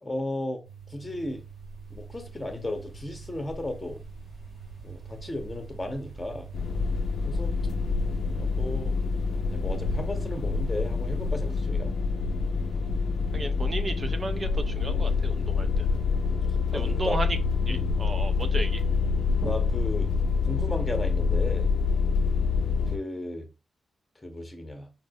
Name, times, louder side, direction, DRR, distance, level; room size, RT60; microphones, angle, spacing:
voice 1, 0.0-1.4 1.9-4.0 4.8-6.5 7.2-7.6 8.3-9.0 9.5-12.0 16.7-17.2 17.7-18.0 19.4-20.2 20.4-21.7 22.9-23.5 24.2-24.9, left 1 dB, 25° left, 0.8 m, -35 dB
sound 1, 0.6-11.6, right 4 dB, 80° right, 1.8 m, -44 dB
sound 2, 6.5-23.0, left 4 dB, 75° left, 0.5 m, -26 dB
voice 2, 13.3-15.9 16.7-17.4 17.7-18.8, right 2 dB, 45° right, 0.5 m, -34 dB
4.3 x 2.0 x 2.6 m
supercardioid pair, 40°, 0 cm